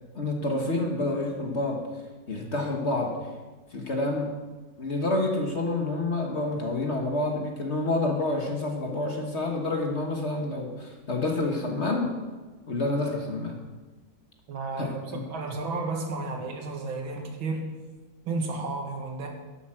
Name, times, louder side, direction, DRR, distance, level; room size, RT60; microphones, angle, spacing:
voice 1, 0.1-1.9 2.3-3.2 3.7-4.3 4.8-12.2 12.7-13.6 14.8-15.2, left 2 dB, 40° left, 2 dB, 1.4 m, -28 dB
voice 2, 14.5-17.7 18.3-19.3, right 3 dB, 85° right, 2 dB, 2.5 m, -32 dB
12.0 x 8.2 x 6.2 m, 1.3 s
omnidirectional pair, 2.1 m